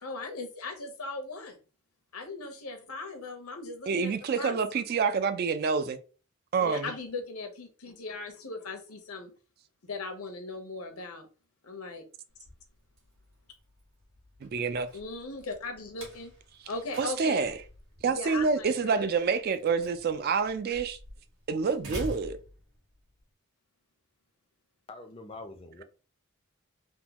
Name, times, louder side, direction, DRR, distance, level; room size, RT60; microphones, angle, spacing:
voice 1, 0.0-1.6 2.1-4.1 4.4-4.6 6.6-9.3 9.8-11.3 11.6-12.0 14.9-16.3 16.7-17.5 18.1-19.1, left 3 dB, 80° left, 0.8 m, -38 dB
voice 2, 3.9-6.0 6.5-6.9 14.4-14.9 17.0-17.5 18.0-21.0 21.5-22.4, right 5 dB, 45° right, 0.3 m, -27 dB
Slam, 12.3-23.2, left 1 dB, 60° right, 1.5 m, -47 dB
voice 3, 24.9-25.8, left 2 dB, 25° left, 0.4 m, -44 dB
3.5 x 2.2 x 2.9 m
head